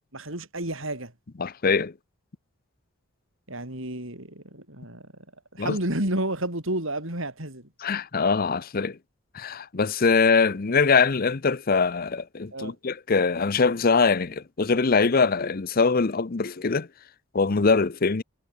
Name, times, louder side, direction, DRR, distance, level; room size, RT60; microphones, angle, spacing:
voice 1, 0.1-1.1 3.5-5.1 5.5-7.7 12.5-12.7, right 1 dB, 65° right, 7.3 m, -31 dB
voice 2, 1.4-1.9 5.6-5.8 7.8-9.0 9.3-16.9 17.3-18.2, left 4 dB, 45° left, 0.7 m, -23 dB
head